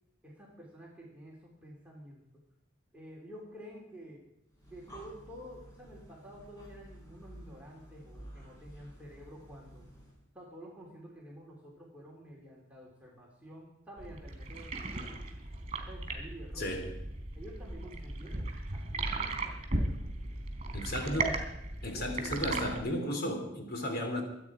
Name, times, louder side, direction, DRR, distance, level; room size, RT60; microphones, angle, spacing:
voice 1, 0.2-2.2 2.9-4.2 4.7-9.9 10.3-15.2 15.9-16.7 17.3-19.6 21.9-22.4, equal, 10° right, -4 dB, 3.2 m, -50 dB
Breathing, 4.5-10.3, equal, 20° left, 4.9 m, -52 dB
sound 1, 14.0-22.8, right 2 dB, 35° right, 3.5 m, -36 dB
voice 2, 16.6-16.9 20.7-21.4 21.8-24.2, equal, 55° left, 3 dB, 3.1 m, -34 dB
25.5 x 9.0 x 4.9 m, 0.87 s
head